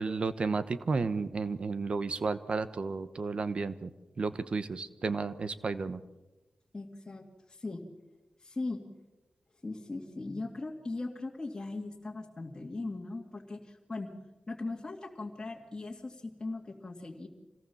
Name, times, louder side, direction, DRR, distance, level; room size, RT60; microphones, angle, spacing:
voice 1, 0.0-3.9 4.2-6.0, right 4 dB, 55° right, 13 dB, 1.0 m, -32 dB
voice 2, 6.7-7.8 8.4-8.8 9.6-14.1 14.5-17.3, left 3 dB, 30° left, -1 dB, 2.4 m, -39 dB
26.0 x 18.0 x 7.1 m, 1.1 s
wide cardioid pair, 90°, 2 cm